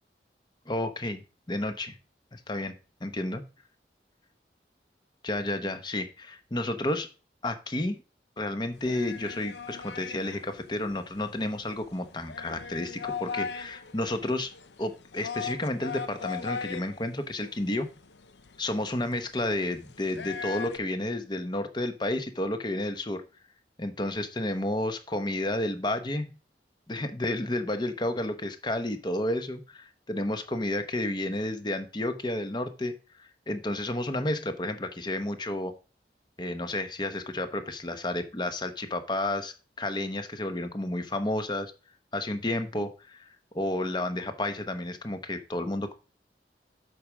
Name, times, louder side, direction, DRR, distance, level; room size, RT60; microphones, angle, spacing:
voice 1, 0.7-1.2 1.5-1.9 2.3-2.7 3.0-3.4 5.2-7.1 7.4-8.0 8.4-14.5 14.8-17.9 18.6-23.2 23.8-26.3 26.9-32.9 33.2-35.7 36.4-41.7 42.1-43.2 43.5-45.9, left 1 dB, 25° left, 8 dB, 1.0 m, -31 dB
sound 1, 8.7-20.8, left 5 dB, 85° left, 0.8 m, -40 dB
7.9 x 5.0 x 6.3 m, 0.33 s
head